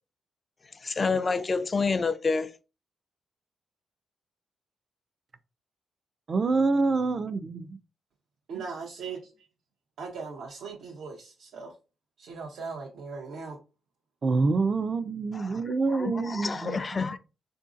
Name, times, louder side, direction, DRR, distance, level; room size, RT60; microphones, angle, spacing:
voice 1, 0.8-2.5 15.3-15.6 15.9-17.2, left 4 dB, 40° left, 0.4 m, -28 dB
voice 2, 6.3-7.8 14.2-16.8, right 3 dB, 45° right, 0.4 m, -26 dB
voice 3, 8.5-9.3 10.0-11.7 12.2-13.6, right 5 dB, 80° right, 0.7 m, -39 dB
3.8 x 2.6 x 2.5 m
cardioid pair, 70°, 0 cm